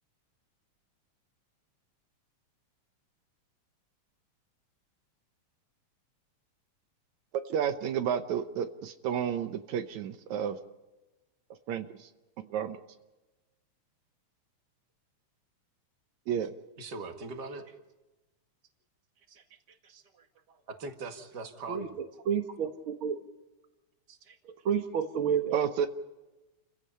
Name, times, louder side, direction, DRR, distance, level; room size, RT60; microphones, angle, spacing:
voice 1, 7.5-10.6 11.7-12.1 12.4-12.8 16.3-16.5 25.5-25.9, right 8 dB, 75° right, 8 dB, 2.2 m, -31 dB
voice 2, 16.8-17.8 19.3-22.0 24.1-24.4, right 3 dB, 40° right, 5 dB, 2.2 m, -43 dB
voice 3, 22.3-23.2 24.7-25.6, right 8 dB, 55° right, 6 dB, 1.7 m, -29 dB
29.5 x 16.0 x 5.5 m, 1.1 s
omnidirectional pair, 3.4 m